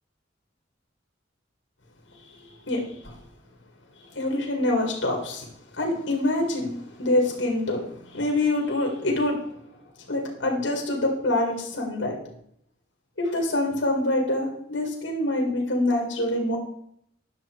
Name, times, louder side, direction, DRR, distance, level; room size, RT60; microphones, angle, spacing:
voice 1, 2.7-3.1 4.1-5.5 5.7-6.7 7.0-9.4 10.1-12.2 13.2-16.6, left 1 dB, 75° left, 1 dB, 2.1 m, -25 dB
10.5 x 6.4 x 4.6 m, 0.71 s
head